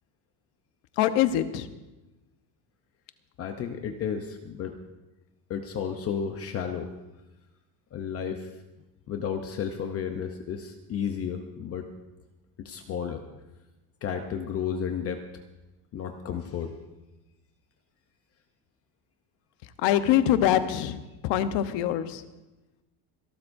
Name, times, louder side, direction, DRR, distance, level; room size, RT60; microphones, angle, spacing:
voice 1, 1.0-1.7 19.8-21.0 21.2-22.2, left 11 dB, 80° left, 10 dB, 1.1 m, -23 dB
voice 2, 3.4-4.7 5.5-6.9 7.9-8.5 9.1-11.9 12.6-13.2 14.0-15.2 15.9-16.7, left 7 dB, 35° left, 5 dB, 0.7 m, -32 dB
26.5 x 12.5 x 2.6 m, 1.0 s
cardioid pair, 175°, 41 cm